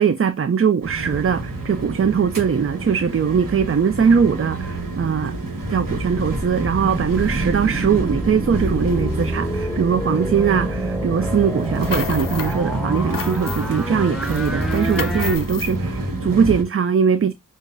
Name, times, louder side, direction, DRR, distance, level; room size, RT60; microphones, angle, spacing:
voice 1, 0.0-5.3 5.7-17.3, right 7 dB, 40° right, 0.4 m, -20 dB
sound 1, 0.8-16.6, right 2 dB, 70° right, 1.3 m, -28 dB
sound 2, 6.1-15.4, equal, ahead, 0.8 m, -28 dB
sound 3, 11.6-12.6 12.9-13.8 14.2-15.8, left 8 dB, 70° left, 0.6 m, -32 dB
6.3 x 2.4 x 2.5 m
wide cardioid pair, 75°, 34 cm